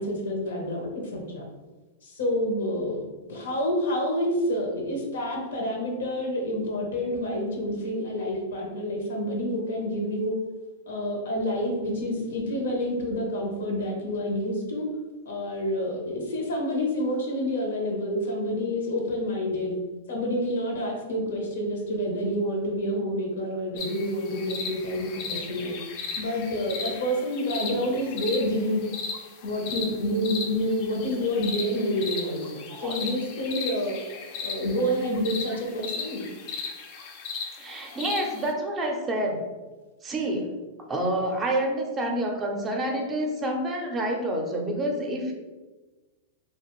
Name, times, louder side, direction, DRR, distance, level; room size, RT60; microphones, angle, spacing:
voice 1, 0.0-1.5 2.0-3.0 3.3-10.3 10.9-14.8 15.2-19.7 20.1-25.8 26.2-28.8 29.4-34.0 34.4-36.3, equal, 90° left, 0 dB, 0.7 m, -28 dB
sound 1, 23.8-38.5, left 5 dB, 45° left, 0.4 m, -37 dB
voice 2, 37.6-39.5 40.0-40.5 40.9-45.3, right 1 dB, 20° right, 2 dB, 0.5 m, -28 dB
2.5 x 2.3 x 3.0 m, 1.2 s
hypercardioid pair, 135°, 0 cm